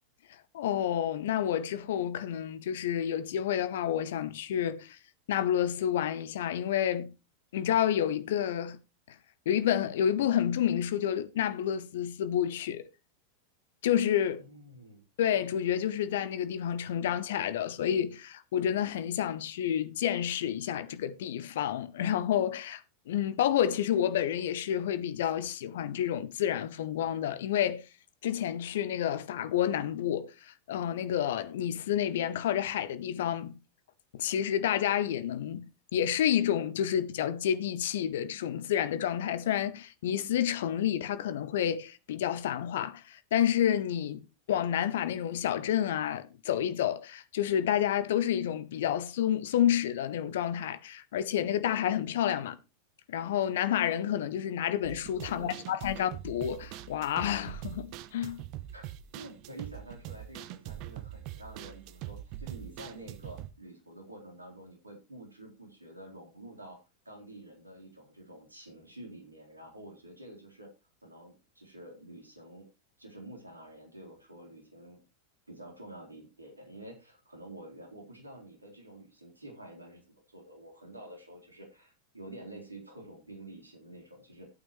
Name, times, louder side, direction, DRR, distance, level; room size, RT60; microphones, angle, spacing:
voice 1, 0.5-5.0 5.3-7.1 7.5-8.8 9.5-12.8 13.8-14.4 15.2-27.8 28.2-33.6 34.1-35.7 35.9-52.6 53.1-58.4, left 10 dB, 55° left, 0.8 m, -29 dB
voice 2, 14.4-15.0 55.2-55.8 58.7-66.8 67.0-70.7 71.0-72.7 73.0-75.0 75.5-84.5, right 1 dB, 80° right, 4.0 m, -49 dB
sound 1, 54.8-63.5, right 13 dB, 40° right, 0.8 m, -43 dB
14.5 x 8.9 x 3.2 m
figure-of-eight pair, 90°, 0 cm